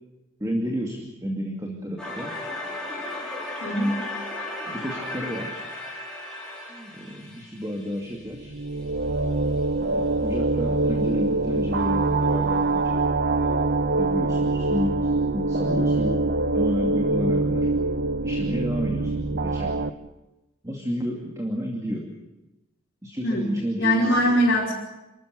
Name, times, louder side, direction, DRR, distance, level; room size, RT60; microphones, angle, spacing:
voice 1, 0.4-2.3 4.7-5.5 6.7-8.5 9.7-13.0 13.4-16.2 16.5-17.7 18.2-19.7 20.6-22.0 23.0-24.2, equal, 15° right, 1 dB, 2.4 m, -31 dB
sound 1, 2.0-8.8, left 1 dB, 5° left, 5.1 m, -35 dB
voice 2, 3.6-3.9 23.2-24.8, equal, 55° left, -8 dB, 5.6 m, -22 dB
sound 2, 8.3-19.9, right 3 dB, 50° right, 0.8 m, -24 dB
29.0 x 14.0 x 8.3 m, 1.0 s
head